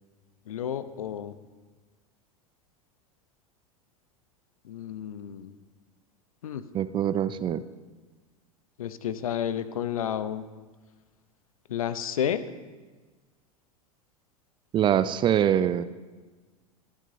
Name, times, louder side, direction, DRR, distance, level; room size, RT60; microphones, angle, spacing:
voice 1, 0.5-1.3 4.6-5.5 6.4-6.6 8.8-10.5 11.7-12.4, left 9 dB, 70° left, 13 dB, 0.7 m, -31 dB
voice 2, 6.7-7.6 14.7-15.8, right 10 dB, 25° right, 14 dB, 0.4 m, -24 dB
24.0 x 9.0 x 2.7 m, 1.3 s
figure-of-eight pair, 85°, 19 cm